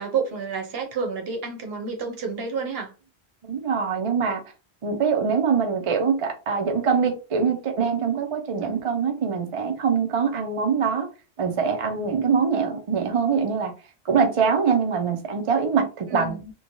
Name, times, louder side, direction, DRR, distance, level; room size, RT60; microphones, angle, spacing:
voice 1, 0.0-2.9 8.6-8.9 16.1-16.5, right 5 dB, 65° right, 1.0 m, -30 dB
voice 2, 3.5-4.4 4.8-11.1 11.4-13.7 14.1-16.4, right 6 dB, 45° right, 0.5 m, -23 dB
3.0 x 2.2 x 2.5 m
omnidirectional pair, 1.1 m